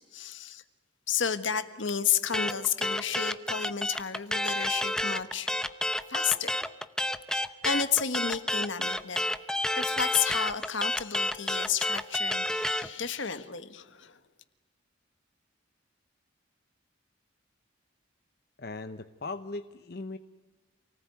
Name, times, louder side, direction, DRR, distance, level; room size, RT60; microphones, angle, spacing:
voice 1, 0.1-0.6 1.1-5.5 6.1-6.5 7.3-9.2 9.7-14.2, left 7 dB, 70° left, 11 dB, 1.5 m, -31 dB
sound 1, 2.3-12.9, left 1 dB, 5° left, 0.7 m, -29 dB
voice 2, 18.6-20.2, left 3 dB, 50° left, 9 dB, 0.8 m, -38 dB
28.5 x 19.0 x 9.3 m, 1.2 s
head